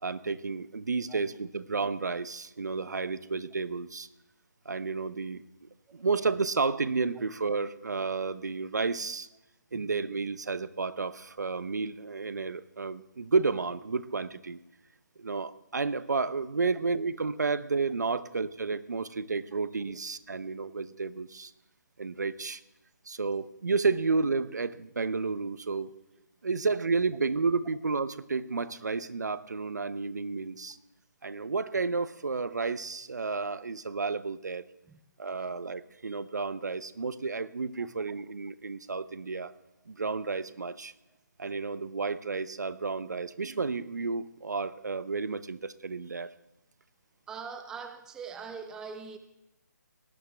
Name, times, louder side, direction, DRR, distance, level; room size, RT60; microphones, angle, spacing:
voice 1, 0.0-4.1 4.6-9.3 9.7-14.6 15.2-21.5 22.0-22.6 23.1-25.9 26.4-30.8 31.2-34.7 35.2-39.5 39.9-40.9 41.4-46.3, right 4 dB, 70° right, 15 dB, 0.8 m, -31 dB
voice 2, 47.3-49.2, right 5 dB, 5° right, 8 dB, 0.5 m, -43 dB
18.5 x 12.5 x 3.4 m, 0.89 s
figure-of-eight pair, 150°, 10 cm